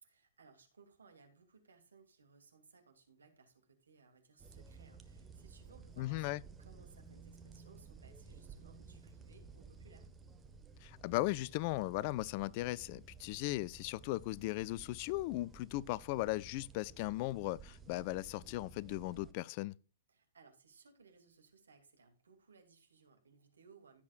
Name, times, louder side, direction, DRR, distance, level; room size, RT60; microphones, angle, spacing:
voice 1, 0.0-10.1 20.1-24.0, right 5 dB, 75° right, 2.8 m, -63 dB
sound 1, 4.4-19.3, right 4 dB, 15° right, 1.4 m, -55 dB
voice 2, 6.0-6.4 10.8-19.7, left 18 dB, 40° left, 0.5 m, -37 dB
16.5 x 7.4 x 2.5 m
figure-of-eight pair, 115°, 0 cm